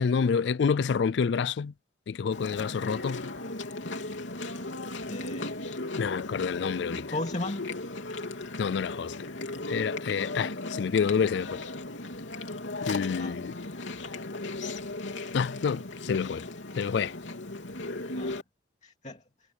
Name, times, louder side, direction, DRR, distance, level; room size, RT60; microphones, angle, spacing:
voice 1, 0.0-1.7 2.1-3.3 6.0-7.1 8.6-9.3 9.7-11.6 12.8-13.6 15.3-16.5 16.8-17.1, left 6 dB, 70° left, 0.4 m, -28 dB
Chewing mastication, 2.3-18.4, left 2 dB, 85° left, 3.4 m, -36 dB
voice 2, 5.1-5.6 7.0-7.7 13.2-13.4 18.1-18.3 18.8-19.2, left 2 dB, 40° left, 2.7 m, -35 dB
head